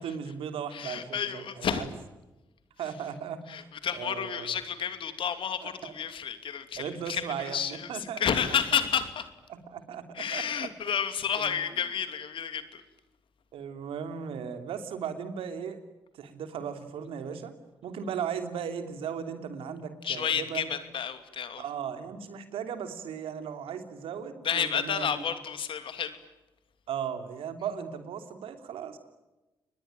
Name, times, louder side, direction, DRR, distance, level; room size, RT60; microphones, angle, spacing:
voice 1, 0.0-1.8 2.8-3.7 3.9-4.6 5.6-5.9 6.8-8.2 9.5-10.7 11.3-11.6 13.5-15.8 16.1-17.5 17.8-20.7 21.6-25.2 26.9-29.0, right 7 dB, 75° right, 8 dB, 3.0 m, -37 dB
voice 2, 0.7-1.9 3.5-9.3 10.1-12.8 20.0-21.6 24.4-26.2, left 7 dB, 65° left, 10 dB, 2.7 m, -31 dB
29.0 x 21.0 x 8.9 m, 1.1 s
hypercardioid pair, 40°, 10 cm